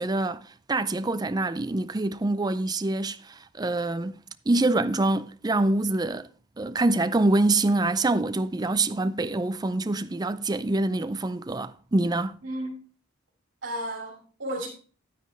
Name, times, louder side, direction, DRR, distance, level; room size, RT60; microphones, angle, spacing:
voice 1, 0.0-4.2 4.5-6.3 6.6-12.4, right 2 dB, 20° right, 0.5 m, -25 dB
voice 2, 12.4-12.7 13.6-14.7, right 1 dB, 65° right, 2.6 m, -33 dB
10.5 x 9.3 x 3.2 m
head